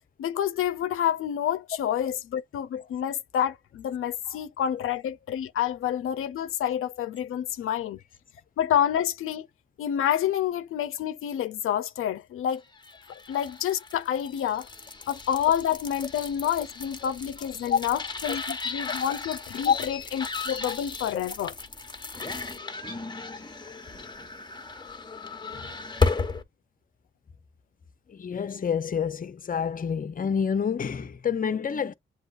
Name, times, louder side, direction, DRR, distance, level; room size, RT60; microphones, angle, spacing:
voice 1, 0.2-8.0 8.6-9.5 9.8-12.6 13.3-14.7 15.1-21.5, left 10 dB, 90° left, 0.4 m, -28 dB
sound 1, 12.8-26.4, left 4 dB, 20° left, 1.1 m, -34 dB
voice 2, 28.1-31.9, left 7 dB, 40° left, 0.6 m, -27 dB
7.7 x 2.8 x 2.4 m
cardioid pair, 75°, 21 cm